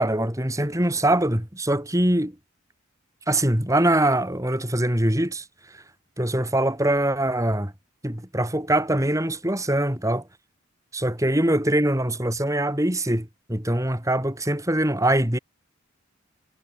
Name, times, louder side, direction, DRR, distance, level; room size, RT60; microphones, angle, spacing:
voice 1, 0.0-2.3 3.3-5.4 5.7-5.8 6.2-7.7 8.0-10.2 10.9-15.4, right 1 dB, 15° right, 3.0 m, -23 dB
head